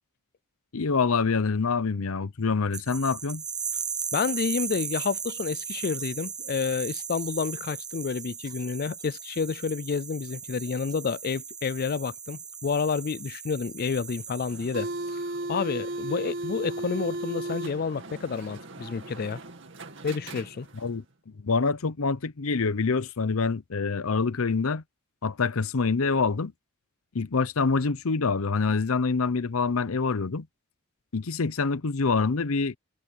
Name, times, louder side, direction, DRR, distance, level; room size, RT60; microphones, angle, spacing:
voice 1, 0.7-3.4 20.8-21.0 21.4-24.8 25.2-26.5 27.1-30.5 31.1-32.8, left 4 dB, 70° left, 0.7 m, -26 dB
sound 1, 2.7-15.0, right 7 dB, 20° right, 1.0 m, -37 dB
voice 2, 4.1-15.2 15.5-19.4 20.0-20.7, left 5 dB, 45° left, 0.4 m, -29 dB
sound 2, 14.5-20.9, right 1 dB, 55° right, 2.4 m, -36 dB
head